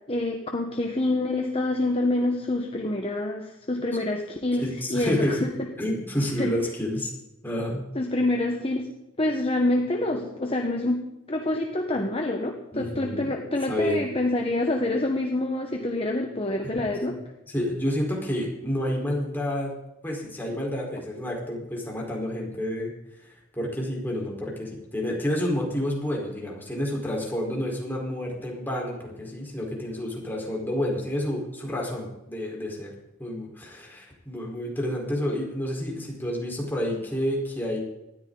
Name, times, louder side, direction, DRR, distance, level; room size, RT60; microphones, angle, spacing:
voice 1, 0.1-5.7 6.4-6.5 7.9-8.9 9.2-11.0 11.3-17.1, left 2 dB, 30° left, 3 dB, 1.3 m, -26 dB
voice 2, 4.6-5.5 5.8-7.1 7.4-7.8 12.7-13.4 13.7-14.0 16.6-16.8 17.5-19.7 20.0-22.9 23.2-32.9 33.2-37.8, left 1 dB, 10° left, -2 dB, 4.4 m, -29 dB
19.5 x 13.5 x 4.0 m, 0.92 s
head